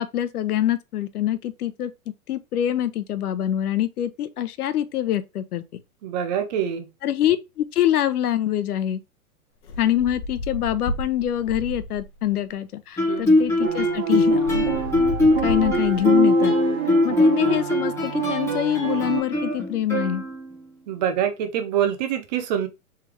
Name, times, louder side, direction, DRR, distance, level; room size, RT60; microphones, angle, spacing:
voice 1, 0.0-1.9 2.3-5.6 7.0-9.0 9.8-14.6 15.4-16.5 17.0-20.2, left 11 dB, 85° left, 0.7 m, -25 dB
voice 2, 6.0-6.9 13.1-13.3 20.9-22.7, right 9 dB, 30° right, 0.6 m, -25 dB
sound 1, 9.6-12.2 13.2-13.3 13.6-16.2, left 1 dB, 50° left, 0.9 m, -33 dB
Guitar, 13.0-20.7, left 2 dB, 5° left, 0.9 m, -22 dB
sound 2, 13.6-19.2, right 9 dB, 55° right, 1.2 m, -28 dB
3.4 x 3.2 x 3.3 m
hypercardioid pair, 140°, 45 cm